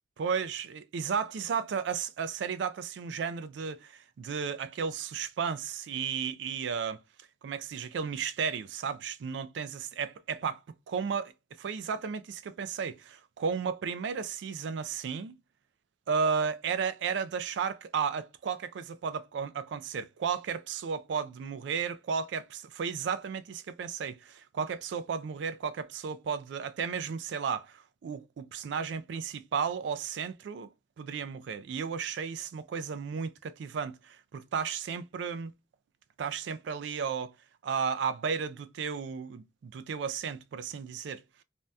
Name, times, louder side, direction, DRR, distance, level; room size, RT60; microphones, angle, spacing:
voice 1, 0.2-7.0 7.4-10.6 10.9-11.3 11.6-15.3 16.1-30.7 31.0-35.5 36.2-37.3 37.6-41.4, right 6 dB, 70° right, 0.3 m, -34 dB
2.6 x 2.2 x 3.3 m
head